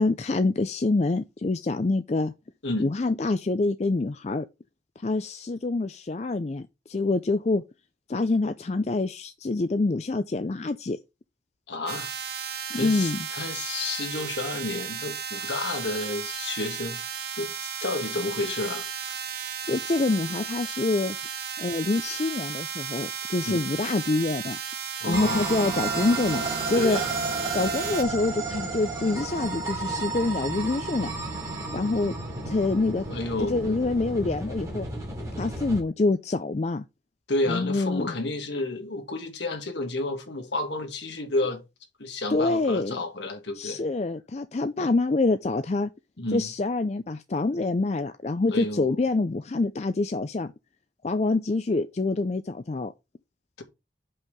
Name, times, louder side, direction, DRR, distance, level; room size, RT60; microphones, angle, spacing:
voice 1, 0.0-2.3 2.8-4.4 5.0-7.6 8.1-11.0 12.7-13.3 19.6-21.2 21.6-24.6 25.0-27.0 27.5-31.1 31.7-32.1 32.5-33.1 33.5-34.9 35.4-36.8 37.5-38.1 42.3-43.0 43.6-45.9 46.3-50.5 51.0-52.9, left 3 dB, 35° left, 0.4 m, -26 dB
voice 2, 11.7-12.1 12.7-17.0 17.4-18.9 23.4-23.5 25.0-25.5 26.8-27.1 33.1-33.8 37.3-41.6 42.0-43.8 46.2-46.5 48.5-49.0, left 2 dB, 70° left, 2.1 m, -31 dB
sound 1, 11.9-28.0, right 8 dB, 55° right, 1.0 m, -35 dB
sound 2, 25.1-35.8, right 3 dB, 15° right, 2.8 m, -32 dB
5.6 x 5.5 x 6.7 m
head